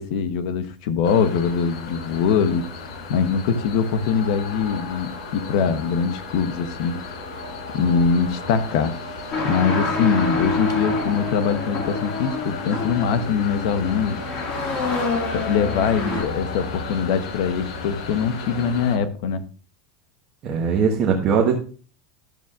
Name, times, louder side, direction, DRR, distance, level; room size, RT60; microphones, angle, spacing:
voice 1, 0.0-2.7 3.1-7.0 7.7-9.0 9.4-14.2 15.3-19.5, left 6 dB, 55° left, 0.8 m, -22 dB
sound 1, 1.0-19.0, left 3 dB, 90° left, 2.7 m, -34 dB
sound 2, 9.3-16.2, left 3 dB, 30° left, 2.0 m, -27 dB
voice 2, 20.4-21.5, right 6 dB, 30° right, 1.1 m, -21 dB
12.0 x 7.2 x 2.5 m
supercardioid pair, 175°, 3 cm